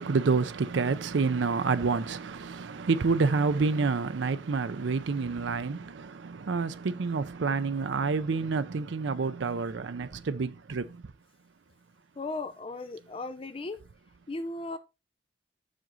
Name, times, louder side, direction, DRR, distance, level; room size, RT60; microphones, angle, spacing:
voice 1, 0.0-11.0, right 4 dB, 70° right, 0.5 m, -28 dB
voice 2, 12.2-13.8 14.3-14.8, left 2 dB, 30° left, 0.4 m, -36 dB
7.5 x 6.1 x 3.8 m
head